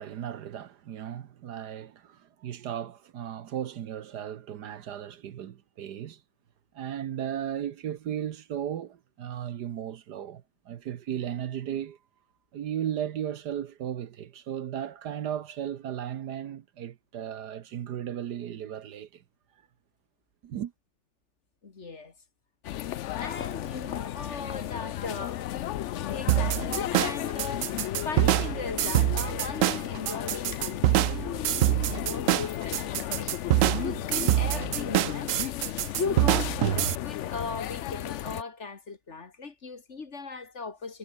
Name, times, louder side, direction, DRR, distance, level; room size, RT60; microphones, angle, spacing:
voice 1, 0.0-6.2 6.7-12.0 12.5-19.2 20.4-20.7, right 10 dB, 70° right, 1.5 m, -35 dB
voice 2, 21.6-22.1 23.1-25.5 25.9-33.3 33.8-35.3 35.9-41.0, left 4 dB, 40° left, 1.9 m, -38 dB
sound 1, 22.6-38.4, left 12 dB, 85° left, 0.6 m, -34 dB
sound 2, 26.3-37.0, right 14 dB, 90° right, 0.7 m, -25 dB
omnidirectional pair, 1.9 m